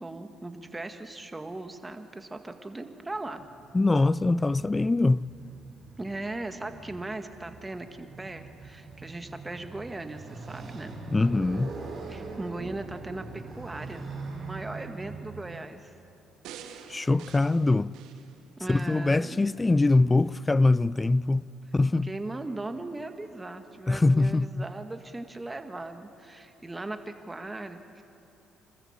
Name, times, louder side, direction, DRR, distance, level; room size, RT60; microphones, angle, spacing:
voice 1, 0.0-3.4 6.0-10.9 12.1-13.2 13.5-14.1 14.5-15.9 18.6-19.5 22.0-28.0, right 2 dB, 20° right, 1.8 m, -38 dB
Motorcycle, 3.1-15.6, right 3 dB, 55° right, 5.8 m, -43 dB
voice 2, 3.7-5.3 11.1-11.7 16.9-18.0 18.7-21.5 21.7-22.1 23.9-24.7, left 2 dB, 20° left, 0.4 m, -23 dB
sound 1, 16.4-18.9 19.4-19.5, right 8 dB, 75° right, 1.3 m, -47 dB
26.5 x 14.0 x 7.4 m
hypercardioid pair, 60°, 0 cm